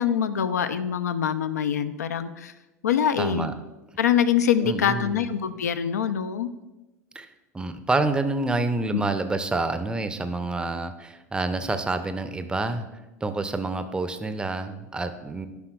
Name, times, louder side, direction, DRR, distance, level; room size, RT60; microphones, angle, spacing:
voice 1, 0.0-2.5 2.8-3.5 4.0-6.5 8.9-9.0, left 8 dB, 75° left, 11 dB, 0.4 m, -24 dB
voice 2, 3.2-3.5 4.6-5.3 7.2-7.3 7.5-12.9 13.2-15.5, right 3 dB, 10° right, 10 dB, 0.5 m, -28 dB
11.5 x 5.7 x 2.3 m, 1.0 s
figure-of-eight pair, 75°, 9 cm